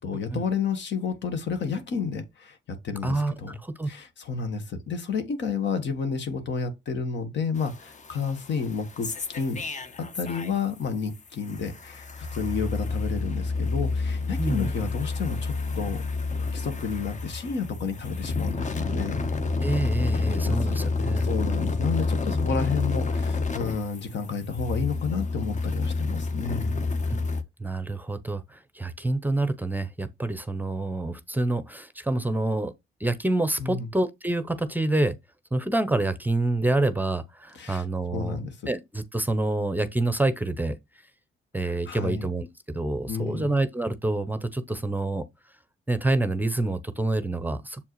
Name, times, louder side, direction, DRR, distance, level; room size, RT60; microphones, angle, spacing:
voice 1, 0.0-3.6 3.9-9.6 10.0-16.0 16.4-19.2 20.1-20.6 21.1-26.8 33.6-33.9 37.5-37.8 38.1-38.7 41.6-42.3 43.1-43.5, left 5 dB, 65° left, 1.4 m, -31 dB
voice 2, 3.0-3.9 14.4-14.7 19.6-21.3 27.1-27.2 27.6-32.7 33.0-35.1 35.5-38.4 38.7-40.8 41.5-45.2 45.9-47.8, right 2 dB, 10° right, 0.7 m, -27 dB
sound 1, 7.6-10.8 11.1-27.4, left 3 dB, 40° left, 1.0 m, -29 dB
7.2 x 4.5 x 3.1 m
supercardioid pair, 70°, 20 cm